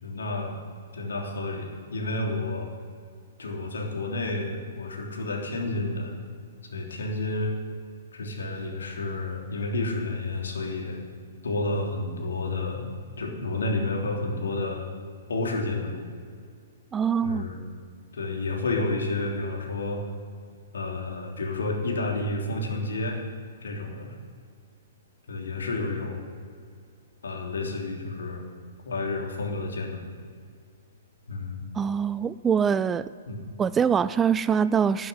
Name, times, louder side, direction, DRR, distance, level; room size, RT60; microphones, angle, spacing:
voice 1, 0.0-0.6 0.9-2.7 3.4-6.1 6.7-7.5 8.1-11.0 11.4-12.9 13.2-14.8 15.3-16.1 17.2-17.6 18.1-20.0 20.7-23.2 23.6-24.1 25.3-26.2 27.2-28.4 28.8-30.1 31.3-31.6 33.3-33.4, left 2 dB, 70° left, 0 dB, 3.2 m, -30 dB
voice 2, 16.9-17.4 31.8-33.1 33.6-35.1, right 7 dB, 15° right, 16 dB, 0.3 m, -24 dB
13.0 x 8.0 x 9.8 m, 2.1 s
figure-of-eight pair, 115°, 0 cm